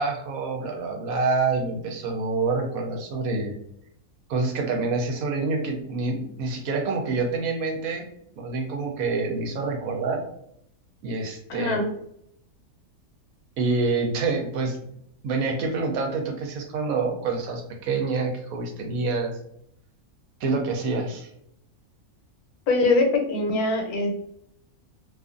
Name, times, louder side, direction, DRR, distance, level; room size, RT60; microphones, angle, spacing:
voice 1, 0.0-3.5 4.3-8.1 8.4-10.2 11.0-11.8 13.6-14.8 15.2-19.3 20.4-21.3, right 3 dB, 70° right, 3 dB, 1.0 m, -27 dB
voice 2, 11.5-11.9 22.7-24.1, left 2 dB, 80° left, 3 dB, 1.1 m, -22 dB
2.5 x 2.4 x 2.4 m, 0.72 s
omnidirectional pair, 1.6 m